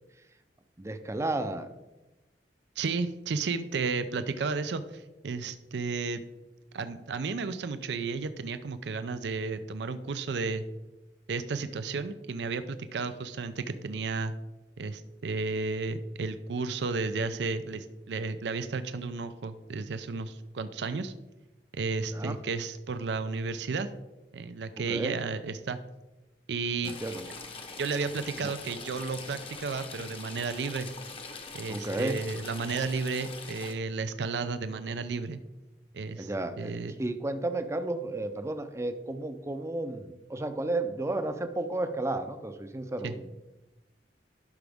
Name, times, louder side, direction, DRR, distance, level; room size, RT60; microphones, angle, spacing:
voice 1, 0.8-1.7 22.1-22.4 24.8-25.2 26.8-27.3 28.4-28.5 31.7-32.2 36.2-36.7 37.0-43.3, right 2 dB, 15° right, 8 dB, 0.6 m, -33 dB
voice 2, 2.8-6.2 6.7-10.6 11.3-14.3 14.8-21.1 21.7-23.9 24.3-25.8 26.5-26.9 27.8-30.9 31.5-35.4 35.9-36.3 36.6-36.9 43.0-43.1, right 4 dB, 75° right, 11 dB, 0.5 m, -33 dB
Stream / Trickle dribble, 26.8-33.7, left 4 dB, 30° left, 0.9 m, -43 dB
11.5 x 6.0 x 3.5 m, 1.0 s
head